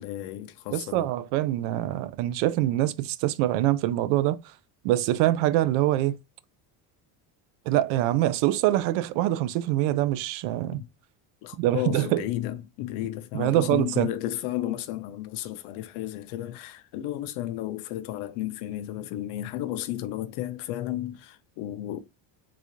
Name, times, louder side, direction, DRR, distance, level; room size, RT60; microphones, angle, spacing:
voice 1, 0.0-1.1 10.7-10.9 11.4-22.0, left 13 dB, 55° left, 0.6 m, -33 dB
voice 2, 0.7-4.4 4.8-6.2 7.7-10.8 11.6-12.3 13.3-14.1, right 14 dB, 75° right, 0.6 m, -24 dB
3.9 x 2.4 x 2.8 m
cardioid pair, 175°, 48 cm